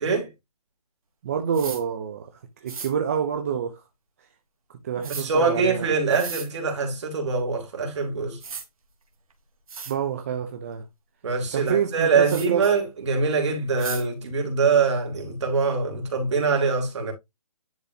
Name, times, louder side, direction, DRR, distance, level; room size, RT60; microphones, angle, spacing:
voice 1, 1.2-2.3 2.6-3.8 4.7-5.9 9.9-10.9 11.5-12.7, right 8 dB, 25° right, 0.6 m, -27 dB
sound 1, 1.5-1.8 2.7-2.9 5.0-5.3 6.1-6.5 7.9-8.0 8.4-8.6 9.3-9.4 9.7-9.9 12.3-12.5 13.8-14.0, right 5 dB, 65° right, 1.8 m, -35 dB
voice 2, 5.1-8.4 11.2-17.1, right 4 dB, 50° right, 2.7 m, -24 dB
10.5 x 3.7 x 2.7 m
hypercardioid pair, 165°, 19 cm